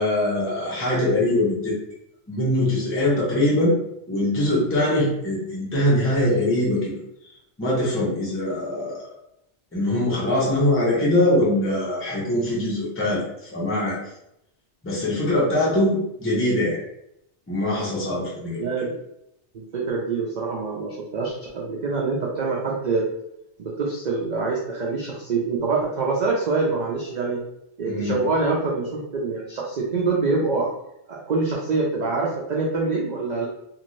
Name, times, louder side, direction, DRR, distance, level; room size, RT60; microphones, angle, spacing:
voice 1, 0.0-1.8 2.3-3.8 4.1-6.9 7.6-9.0 9.7-14.0 14.8-16.8 17.5-18.6 27.9-28.1, left 1 dB, 15° left, -7 dB, 0.8 m, -22 dB
voice 2, 18.6-18.9 19.5-23.1 23.6-27.4 27.8-30.7 31.1-33.5, right 3 dB, 60° right, -3 dB, 0.5 m, -25 dB
2.6 x 2.5 x 3.0 m, 0.80 s
omnidirectional pair, 1.2 m